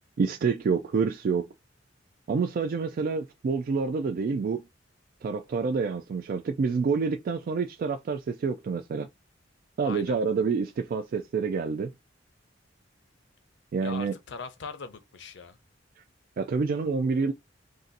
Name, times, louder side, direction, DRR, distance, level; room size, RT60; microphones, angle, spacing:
voice 1, 0.2-1.5 2.3-4.6 5.2-9.1 9.8-11.9 13.7-14.1 16.4-17.3, right 5 dB, 50° right, 0.3 m, -27 dB
voice 2, 9.8-10.2 13.8-15.6, left 5 dB, 65° left, 0.6 m, -40 dB
2.6 x 2.5 x 3.8 m
head